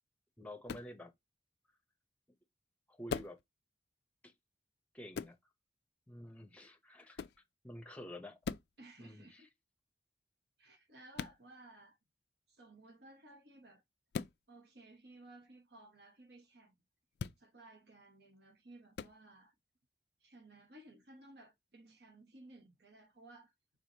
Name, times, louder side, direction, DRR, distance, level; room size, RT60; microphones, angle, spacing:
voice 1, 0.4-1.1 2.9-3.4 4.2-4.3 4.9-5.4 6.1-7.3 7.6-8.4 9.0-9.4, left 1 dB, 5° left, 0.7 m, -49 dB
sound 1, 0.7-0.9 3.1-3.4 5.1-5.4 7.1-7.4 8.4-8.7 11.1-11.4 14.1-14.4 17.1-17.4 18.9-19.1, left 6 dB, 65° left, 0.3 m, -40 dB
voice 2, 8.8-9.5 10.6-12.0 12.5-13.8 14.5-16.8 17.4-19.5 20.2-23.5, right 2 dB, 70° right, 1.3 m, -58 dB
4.9 x 3.8 x 2.8 m
head